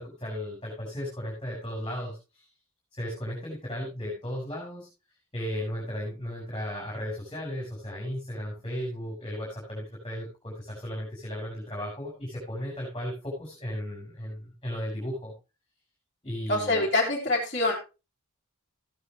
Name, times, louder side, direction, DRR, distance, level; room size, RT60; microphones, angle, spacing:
voice 1, 0.0-2.5 2.9-4.9 5.3-15.3 16.2-16.9, equal, 20° left, -3 dB, 5.1 m, -35 dB
voice 2, 16.5-17.7, left 2 dB, 40° left, -6 dB, 3.0 m, -25 dB
15.0 x 9.7 x 3.0 m, 0.29 s
head